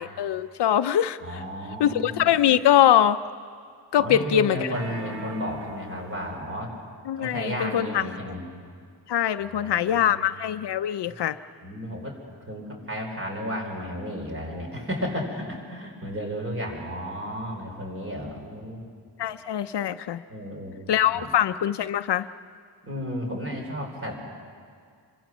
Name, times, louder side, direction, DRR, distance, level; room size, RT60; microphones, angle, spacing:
voice 1, 0.0-1.4 1.8-3.2 3.9-4.7 7.1-8.0 9.1-11.4 19.2-20.2 20.9-22.3, left 10 dB, 65° left, 12 dB, 0.6 m, -23 dB
voice 2, 1.2-2.3 4.0-6.7 7.2-8.4 9.4-10.2 11.0-11.1 11.6-12.2 12.5-18.8 20.3-21.3 22.8-24.2, equal, 30° right, 1 dB, 4.4 m, -33 dB
sound 1, 4.7-6.7, right 1 dB, 65° right, 2.4 m, -40 dB
26.5 x 23.5 x 6.2 m, 2.2 s
wide cardioid pair, 170°, 44 cm